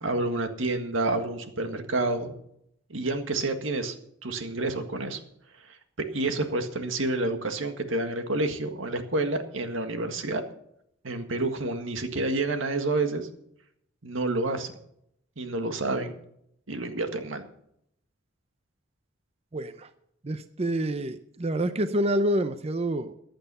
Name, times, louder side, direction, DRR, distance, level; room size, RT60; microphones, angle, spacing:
voice 1, 0.0-2.3 2.9-4.0 4.2-5.2 5.6-10.4 11.0-13.3 14.0-14.7 15.4-16.1 16.7-17.4, right 2 dB, 90° right, 7 dB, 1.8 m, -29 dB
voice 2, 19.5-19.9 20.2-23.1, right 1 dB, 30° right, 10 dB, 0.6 m, -27 dB
15.0 x 10.5 x 5.5 m, 0.73 s
head